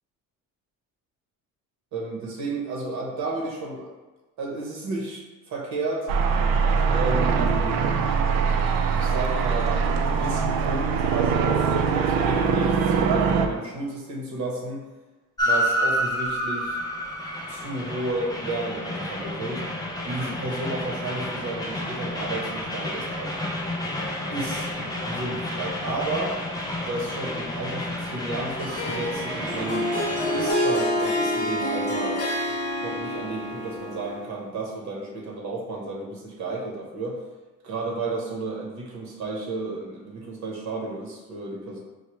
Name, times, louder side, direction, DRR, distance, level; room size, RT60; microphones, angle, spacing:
voice 1, 1.9-3.9 4.4-6.1 6.9-7.8 8.9-14.8 15.4-16.8 17.5-19.6 20.1-23.4 24.3-26.4 26.9-29.9 30.3-32.2 32.8-37.2 37.6-41.8, right 2 dB, 60° right, -3 dB, 0.9 m, -32 dB
sound 1, 6.1-13.5, right 5 dB, 90° right, 0.5 m, -22 dB
Train, 15.4-30.5, equal, 10° left, 0.3 m, -30 dB
Harp, 28.6-34.4, left 1 dB, 45° left, 0.8 m, -27 dB
4.5 x 2.2 x 3.0 m, 1.2 s
cardioid pair, 155°, 34 cm